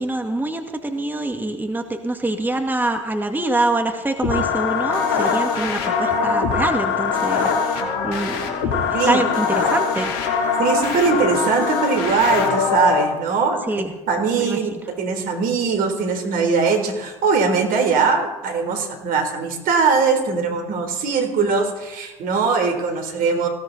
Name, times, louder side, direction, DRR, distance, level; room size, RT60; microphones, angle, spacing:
voice 1, 0.0-10.6 13.7-13.9 14.4-14.6, right 2 dB, 10° right, 4 dB, 2.1 m, -25 dB
sound 1, 4.2-13.0, left 5 dB, 75° left, 3.1 m, -22 dB
voice 2, 10.6-13.7 14.1-14.7 15.0-23.5, right 5 dB, 65° right, 6 dB, 3.8 m, -21 dB
20.0 x 17.0 x 4.1 m, 1.1 s
hypercardioid pair, 65°, 16 cm